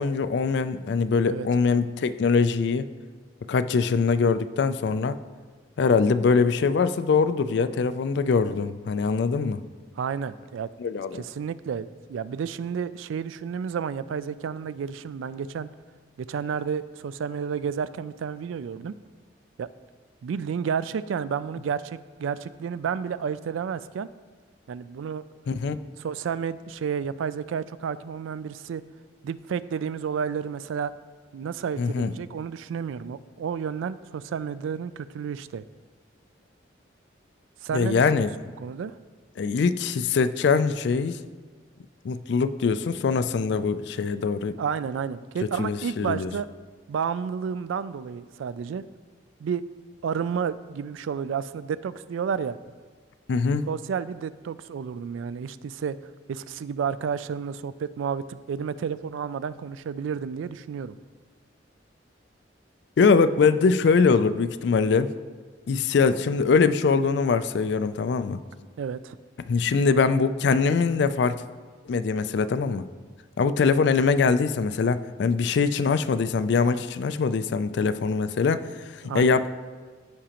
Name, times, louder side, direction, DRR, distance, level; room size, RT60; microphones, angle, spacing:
voice 1, 0.0-2.9 3.5-5.2 5.8-9.6 10.8-11.2 25.5-25.8 31.8-32.1 37.7-38.3 39.4-41.2 42.0-44.6 45.6-46.3 53.3-53.7 63.0-65.1 65.7-68.4 69.5-71.4 71.9-72.9 73.4-78.7 79.1-79.5, left 5 dB, 60° left, 13 dB, 0.3 m, -23 dB
voice 2, 10.0-10.7 11.1-15.7 16.2-18.9 19.6-19.7 20.2-24.1 24.7-25.2 26.0-28.8 29.2-30.9 31.3-35.6 37.6-38.0 38.6-39.0 44.6-46.5 46.9-48.8 49.4-49.6 50.0-52.6 53.7-56.0 56.3-61.0 68.8-69.2 79.0-79.4, right 7 dB, 85° right, 16 dB, 0.3 m, -31 dB
14.0 x 5.0 x 2.9 m, 1.4 s
head